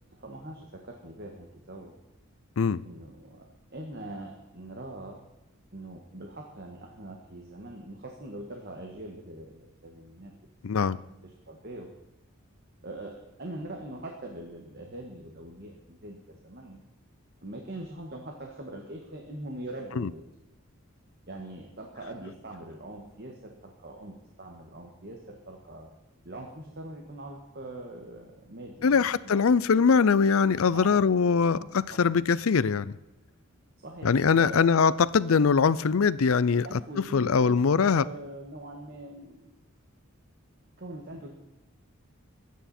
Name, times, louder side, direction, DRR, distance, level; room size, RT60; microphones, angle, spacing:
voice 1, 0.1-2.0 2.8-5.3 5.7-10.3 10.7-11.9 12.8-16.8 17.4-20.2 21.3-25.9 26.2-29.8 30.7-32.3 33.8-35.0 36.6-39.6 40.8-41.3, right 1 dB, 45° right, 1 dB, 1.7 m, -43 dB
voice 2, 10.6-11.0 20.0-20.1 28.8-32.9 34.0-36.7 37.1-38.0, left 5 dB, 70° left, 18 dB, 0.5 m, -22 dB
22.5 x 9.3 x 4.3 m, 0.98 s
head